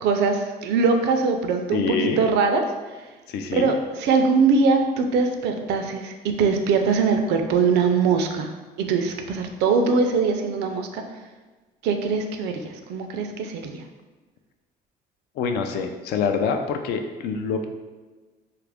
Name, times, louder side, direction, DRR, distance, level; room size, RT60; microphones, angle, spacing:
voice 1, 0.0-2.6 3.5-8.5 8.8-11.0 11.8-13.8, right 4 dB, 80° right, 5 dB, 0.4 m, -22 dB
voice 2, 1.7-2.2 3.3-3.7 15.4-17.6, left 5 dB, 75° left, 5 dB, 0.4 m, -25 dB
2.9 x 2.4 x 3.4 m, 1.3 s
cardioid pair, 110°, 17 cm